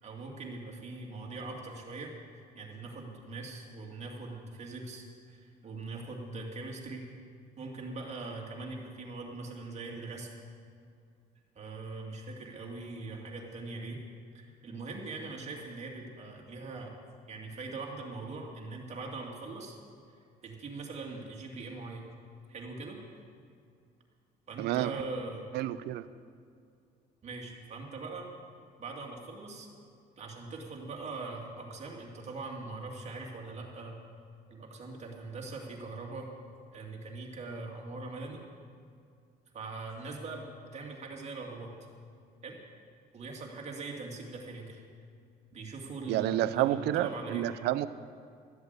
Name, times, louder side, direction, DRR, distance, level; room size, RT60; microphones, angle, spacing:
voice 1, 0.0-2.1 2.5-7.1 7.6-10.3 11.6-14.0 14.3-17.0 17.3-19.8 20.4-22.1 22.5-23.0 24.5-25.5 27.2-28.3 28.8-29.7 30.2-34.0 34.5-36.3 36.7-38.4 39.5-40.5 40.7-41.8 42.4-42.6 43.1-44.8 45.5-47.4, right 3 dB, 40° right, 0 dB, 2.4 m, -41 dB
voice 2, 24.6-25.0 25.5-26.1 46.1-47.9, right 13 dB, 80° right, 14 dB, 0.6 m, -29 dB
13.0 x 8.0 x 8.1 m, 2.3 s
cardioid pair, 110°, 17 cm